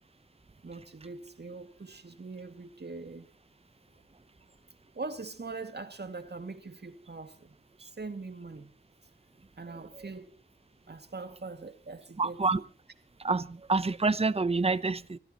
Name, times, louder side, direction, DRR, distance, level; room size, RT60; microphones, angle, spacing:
voice 1, 0.6-3.3 4.9-8.7 9.6-10.3 10.9-12.4, right 3 dB, 60° right, 2.2 m, -42 dB
voice 2, 12.2-12.6 13.2-15.2, right 3 dB, 30° right, 0.7 m, -27 dB
25.5 x 16.5 x 3.0 m
wide cardioid pair, 80°, 19 cm